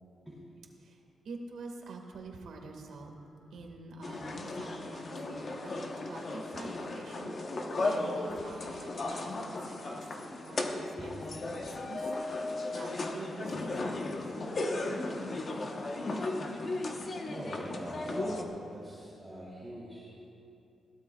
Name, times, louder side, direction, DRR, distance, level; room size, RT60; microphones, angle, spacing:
voice 1, 0.8-3.1 3.5-5.7 6.1-14.4, right 3 dB, 80° right, 2 dB, 1.8 m, -47 dB
sound 1, 4.0-18.4, left 2 dB, 40° left, 1.0 m, -36 dB
voice 2, 17.3-20.1, equal, ahead, -9 dB, 2.7 m, -42 dB
21.0 x 17.0 x 2.4 m, 2.6 s
wide cardioid pair, 155°, 0 cm